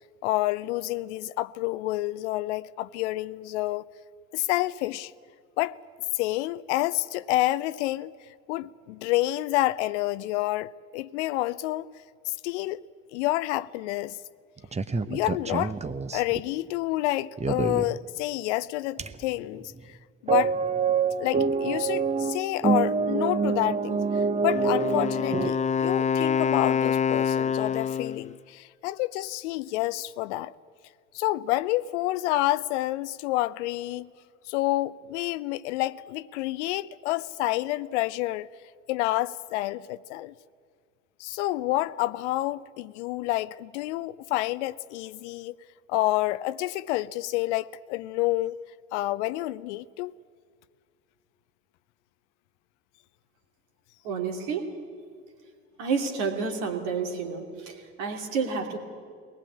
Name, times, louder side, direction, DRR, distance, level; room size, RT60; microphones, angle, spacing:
voice 1, 0.2-3.9 4.3-5.1 5.6-5.8 6.1-8.1 8.5-11.9 12.4-12.9 13.1-14.2 15.1-15.8 16.1-19.7 20.2-20.5 21.2-30.5 31.1-34.1 34.5-38.5 38.9-40.3 41.2-45.5 45.9-48.5 48.9-50.1, left 16 dB, 65° left, 0.6 m, -28 dB
sound 1, 14.6-16.4 17.4-18.0 19.0-19.4 19.7-19.8 20.3-25.5, right 5 dB, 15° right, 0.9 m, -26 dB
Wind instrument woodwind instrument, 24.5-28.3, left 7 dB, 20° left, 0.5 m, -26 dB
voice 2, 54.0-54.7 55.8-58.8, right 5 dB, 65° right, 2.8 m, -30 dB
23.0 x 19.5 x 8.6 m
figure-of-eight pair, 55°, 38 cm